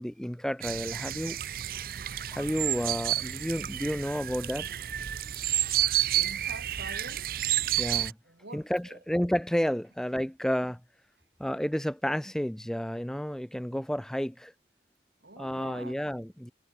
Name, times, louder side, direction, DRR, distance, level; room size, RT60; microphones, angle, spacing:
voice 1, 0.0-1.4 2.3-4.7 7.8-8.1 8.5-10.8 11.4-14.5 15.4-16.5, equal, 5° left, 0.4 m, -31 dB
sound 1, 0.6-8.1, right 13 dB, 55° right, 0.5 m, -30 dB
voice 2, 6.1-7.3 8.2-9.0 15.2-16.0, right 2 dB, 75° right, 3.7 m, -46 dB
head